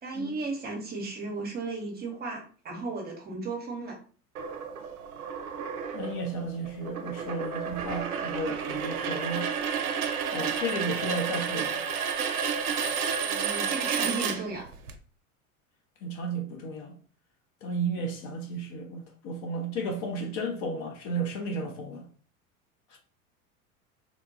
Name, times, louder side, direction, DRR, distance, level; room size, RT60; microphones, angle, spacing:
voice 1, 0.0-4.0 10.3-10.4 13.2-14.7, right 3 dB, 20° right, 0.7 m, -35 dB
coin spin, 4.4-14.9, right 7 dB, 80° right, 0.5 m, -31 dB
voice 2, 5.9-9.5 10.3-11.8 16.0-16.9 17.6-22.1 22.9-23.0, right 2 dB, 40° left, 0.7 m, -33 dB
2.9 x 2.2 x 2.7 m
figure-of-eight pair, 75°, 44 cm